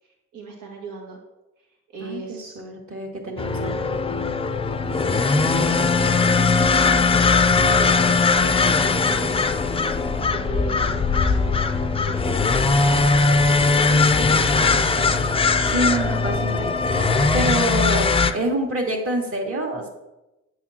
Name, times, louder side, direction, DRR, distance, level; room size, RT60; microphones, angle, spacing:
voice 1, 0.0-1.2 1.6-2.6 5.1-9.9 10.2-13.0 13.3-15.0, right 4 dB, 80° right, -1 dB, 1.8 m, -38 dB
voice 2, 2.0-4.2 13.9-16.7 17.0-19.9, right 1 dB, 45° right, 0 dB, 2.1 m, -28 dB
sound 1, 3.4-18.3, left 4 dB, 20° left, 0.4 m, -20 dB
9.2 x 6.9 x 2.9 m, 0.97 s
cardioid pair, 90°, 30 cm